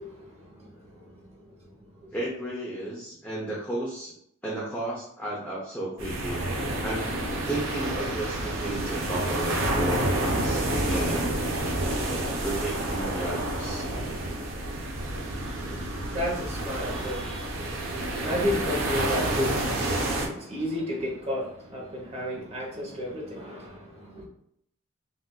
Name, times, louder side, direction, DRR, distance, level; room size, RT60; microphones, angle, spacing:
voice 1, 0.0-2.1 15.4-24.2, left 1 dB, 30° right, 0.9 m, -34 dB
voice 2, 2.1-4.1 4.4-6.4 6.8-7.2 7.5-11.3 12.4-13.9, right 1 dB, 10° left, 0.5 m, -33 dB
sound 1, 6.0-20.3, right 1 dB, 70° right, 0.7 m, -29 dB
3.6 x 2.5 x 2.2 m
head